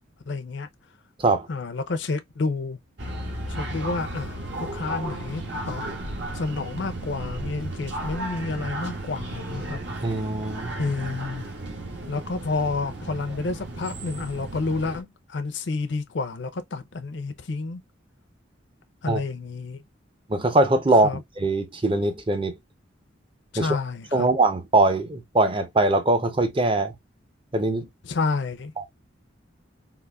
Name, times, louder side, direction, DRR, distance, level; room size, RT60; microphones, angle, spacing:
voice 1, 0.3-0.7 1.5-2.8 3.5-5.8 6.3-9.8 10.8-11.5 12.1-17.8 19.0-19.8 21.0-21.2 23.5-24.3 28.0-28.7, left 3 dB, 65° left, 0.5 m, -30 dB
sound 1, 3.0-15.0, right 1 dB, 60° right, 1.0 m, -34 dB
voice 2, 10.0-10.7 19.1-19.2 20.3-22.6 23.6-23.8 24.1-26.9 27.5-27.9 28.8-28.9, right 2 dB, 25° right, 0.6 m, -22 dB
3.9 x 2.6 x 2.3 m
head